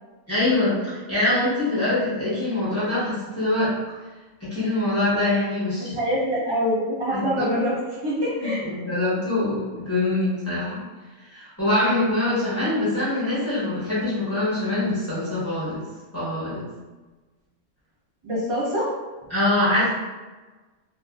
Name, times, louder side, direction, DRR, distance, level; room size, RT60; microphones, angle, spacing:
voice 1, 0.3-3.7 4.4-6.0 7.1-7.6 8.4-10.8 11.2-15.8 16.1-16.7 19.3-19.9, left 2 dB, 10° left, -11 dB, 0.8 m, -24 dB
voice 2, 5.8-7.8 8.0-8.6 18.2-18.9, equal, 25° right, -9 dB, 1.0 m, -25 dB
2.6 x 2.4 x 2.3 m, 1.2 s
omnidirectional pair, 1.5 m